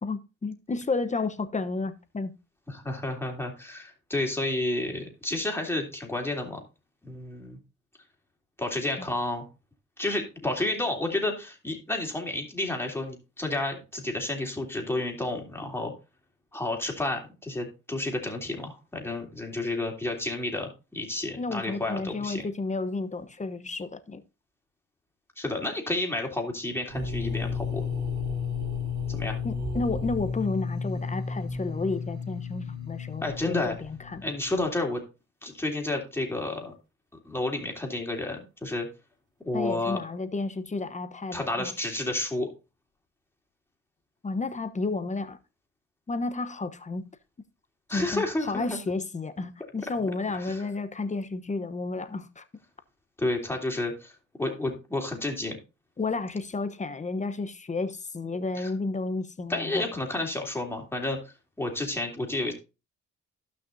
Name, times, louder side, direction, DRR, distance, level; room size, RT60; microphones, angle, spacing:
voice 1, 0.0-2.3 21.4-24.2 29.4-33.7 34.1-34.3 39.5-41.7 44.2-45.4 46.1-47.0 47.9-52.4 56.0-59.9, left 3 dB, 25° left, 0.9 m, -31 dB
voice 2, 2.7-6.6 7.0-7.6 8.6-9.5 10.0-15.9 16.5-22.4 25.4-27.8 29.1-29.4 33.2-33.8 34.2-35.0 35.4-36.7 37.2-38.9 39.4-40.0 41.3-42.5 47.9-48.8 50.3-50.6 53.2-54.1 54.4-55.6 58.5-58.7 59.5-62.5, left 2 dB, 10° left, 3.1 m, -31 dB
sound 1, 26.9-34.6, left 5 dB, 70° right, 4.1 m, -33 dB
15.0 x 6.0 x 2.7 m
cardioid pair, 90°, 30 cm